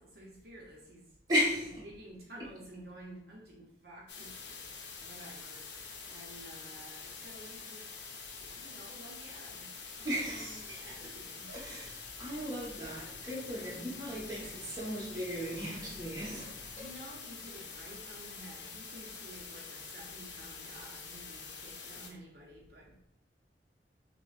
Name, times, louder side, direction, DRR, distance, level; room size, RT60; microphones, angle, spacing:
voice 1, 0.0-1.2 1.8-7.9 8.4-9.7 9.9-11.5 16.7-23.0, right 1 dB, 55° right, 0.6 m, -52 dB
voice 2, 1.3-1.8 10.0-10.8 11.5-16.7, equal, 20° right, 1.0 m, -36 dB
sound 1, 4.1-22.1, left 5 dB, 80° left, 0.6 m, -46 dB
5.8 x 2.0 x 2.4 m
head